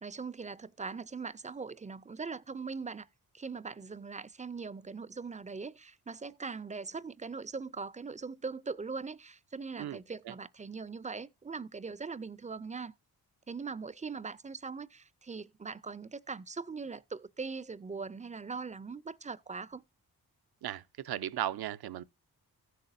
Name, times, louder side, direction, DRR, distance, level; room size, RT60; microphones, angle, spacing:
voice 1, 0.0-3.1 3.3-12.9 13.5-19.8, right 4 dB, 20° right, 0.4 m, -41 dB
voice 2, 20.6-22.0, right 12 dB, 85° right, 0.6 m, -36 dB
15.0 x 6.6 x 2.6 m
cardioid pair, 80°, 37 cm